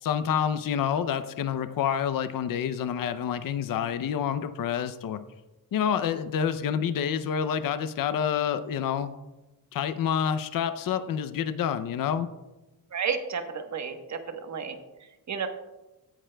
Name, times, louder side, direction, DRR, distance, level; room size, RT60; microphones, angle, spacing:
voice 1, 0.0-5.2 5.7-9.1 9.7-12.3, left 8 dB, 60° left, 11 dB, 0.6 m, -28 dB
voice 2, 12.9-14.7 15.3-15.5, right 6 dB, 50° right, 6 dB, 1.2 m, -31 dB
16.0 x 9.8 x 2.2 m, 1.0 s
wide cardioid pair, 145°, 37 cm